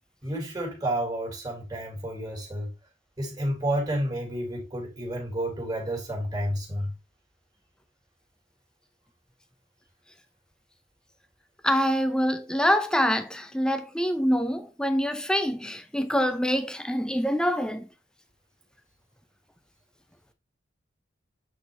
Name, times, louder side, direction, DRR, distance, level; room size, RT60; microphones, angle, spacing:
voice 1, 0.2-2.7 3.2-6.9, right 1 dB, 20° right, 2.1 m, -30 dB
voice 2, 11.6-17.9, equal, 5° left, 0.6 m, -25 dB
8.0 x 4.1 x 3.3 m
head